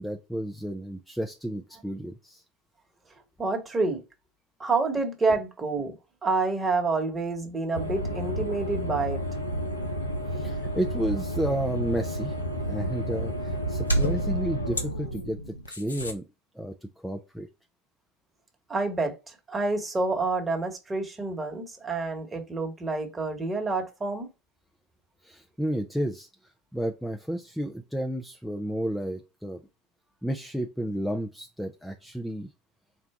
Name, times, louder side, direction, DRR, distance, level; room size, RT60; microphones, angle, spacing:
voice 1, 0.0-2.4 10.3-12.3 12.7-16.2 16.6-17.5 25.2-26.3 26.7-29.6 30.2-32.5, right 1 dB, ahead, 0.5 m, -32 dB
voice 2, 3.4-4.0 4.6-5.9 6.2-9.2 18.7-19.1 19.5-24.3, right 3 dB, 20° right, 1.3 m, -28 dB
sound 1, 7.7-16.1, equal, 85° left, 0.7 m, -30 dB
4.5 x 2.3 x 3.7 m
figure-of-eight pair, 75°, 0 cm